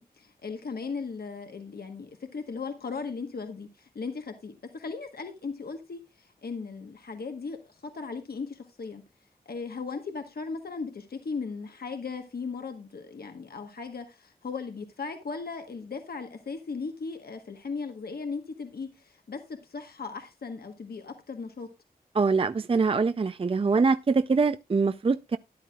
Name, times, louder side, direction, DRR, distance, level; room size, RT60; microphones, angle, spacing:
voice 1, 0.0-9.0 9.5-21.7, left 4 dB, 80° left, 1.2 m, -37 dB
voice 2, 22.1-25.4, right 4 dB, 35° right, 0.4 m, -24 dB
13.0 x 10.5 x 2.3 m
wide cardioid pair, 65°, 16 cm